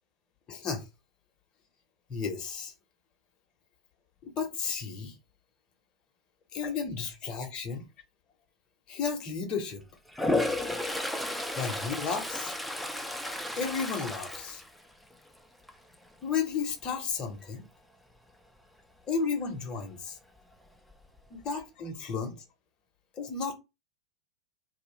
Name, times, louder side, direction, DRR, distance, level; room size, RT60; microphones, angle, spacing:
voice 1, 0.5-0.9 2.1-2.7 4.2-5.1 6.5-7.9 8.9-9.8 11.6-12.5 13.5-14.6 16.2-17.7 19.1-20.2 21.3-22.4 23.2-23.5, left 5 dB, 35° left, 0.7 m, -33 dB
Toilet flush, 10.1-15.3 15.7-16.1 20.5-20.6 20.9-21.6, left 1 dB, ahead, 0.4 m, -33 dB
2.3 x 2.0 x 3.0 m
hypercardioid pair, 90°, 3 cm